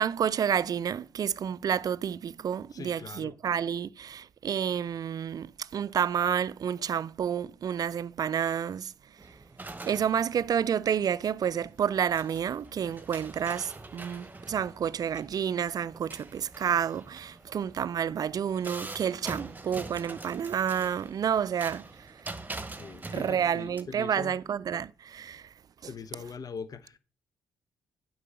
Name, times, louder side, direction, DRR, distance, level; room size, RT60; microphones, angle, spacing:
voice 1, 0.0-8.9 9.2-9.3 9.8-22.3 23.1-25.5, right 8 dB, 50° right, 0.4 m, -30 dB
voice 2, 2.7-3.3 22.5-24.4 25.9-27.0, left 5 dB, 45° left, 0.9 m, -42 dB
sound 1, 9.2-23.8, right 2 dB, 20° right, 1.1 m, -45 dB
8.2 x 4.7 x 6.9 m
hypercardioid pair, 45°, 8 cm